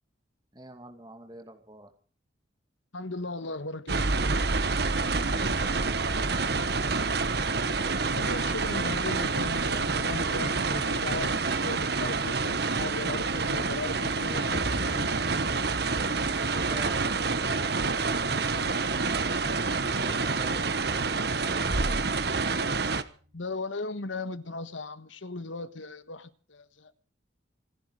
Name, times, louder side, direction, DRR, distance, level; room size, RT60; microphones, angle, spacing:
voice 1, 0.5-1.9 4.9-7.1 16.1-22.7, right 1 dB, 20° right, 5 dB, 2.4 m, -48 dB
voice 2, 2.9-4.1 8.1-15.1 23.3-26.9, left 2 dB, 80° left, 13 dB, 1.4 m, -37 dB
sound 1, 3.9-23.0, right 4 dB, 55° right, 1.2 m, -28 dB
sound 2, 23.1-23.6, right 1 dB, 85° right, 5.5 m, -44 dB
26.5 x 10.5 x 4.9 m, 0.40 s
head